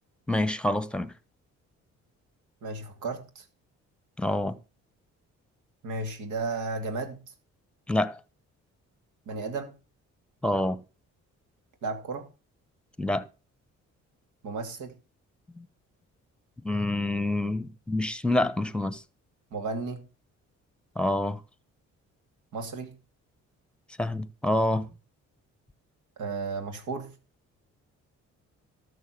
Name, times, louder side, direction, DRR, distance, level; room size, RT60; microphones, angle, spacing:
voice 1, 0.3-1.1 4.2-4.5 7.9-8.2 10.4-10.8 13.0-13.3 15.6-15.7 16.6-19.0 21.0-21.4 24.0-24.9, left 1 dB, 5° left, 1.0 m, -27 dB
voice 2, 2.6-3.4 5.8-7.2 9.3-9.7 11.8-12.3 14.4-15.0 19.5-20.1 22.5-23.0 26.2-27.1, right 3 dB, 80° right, 2.6 m, -34 dB
13.0 x 6.4 x 5.9 m
cardioid pair, 90°, 30 cm